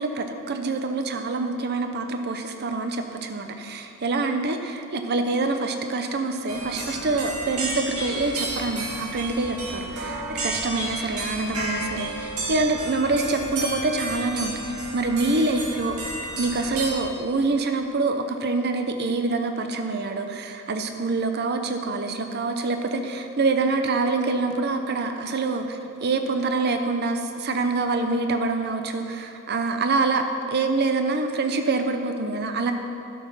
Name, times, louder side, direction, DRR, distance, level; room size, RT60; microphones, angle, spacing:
voice 1, 0.0-32.7, right 3 dB, 50° right, 6 dB, 0.6 m, -26 dB
sound 1, 6.5-16.9, right 2 dB, 85° right, 2.2 m, -32 dB
12.0 x 6.2 x 5.4 m, 2.7 s
head